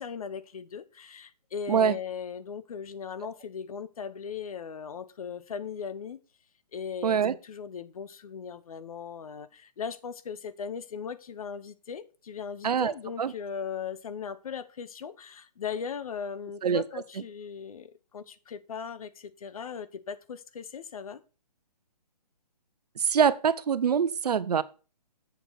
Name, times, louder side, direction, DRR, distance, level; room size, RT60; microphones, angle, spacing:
voice 1, 0.0-6.2 6.7-21.2, left 7 dB, 60° left, 14 dB, 1.2 m, -38 dB
voice 2, 7.0-7.3 12.6-13.3 16.6-16.8 23.0-24.6, right 7 dB, 70° right, 15 dB, 0.9 m, -24 dB
8.1 x 7.5 x 4.1 m, 0.34 s
hypercardioid pair, 155°, 21 cm